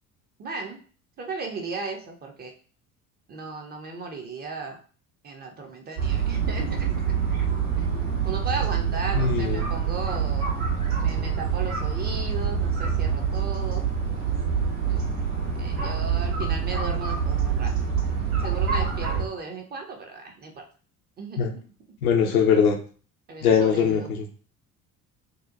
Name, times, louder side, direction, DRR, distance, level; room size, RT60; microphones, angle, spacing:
voice 1, 0.4-0.8 1.2-2.5 3.3-4.8 5.2-7.2 7.8-10.5 11.0-13.8 14.9-15.0 15.6-17.7 18.4-20.5 21.2-21.6 22.2-22.3 23.3-24.1, right 4 dB, 25° right, 2 dB, 0.5 m, -36 dB
sound 1, 6.0-19.2, right 6 dB, 75° right, 1.2 m, -26 dB
voice 2, 9.1-9.7 21.4-21.5 22.0-22.8 23.4-24.3, left 7 dB, 75° left, 3 dB, 0.6 m, -21 dB
2.7 x 2.1 x 2.5 m, 0.40 s
figure-of-eight pair, 60°, 44 cm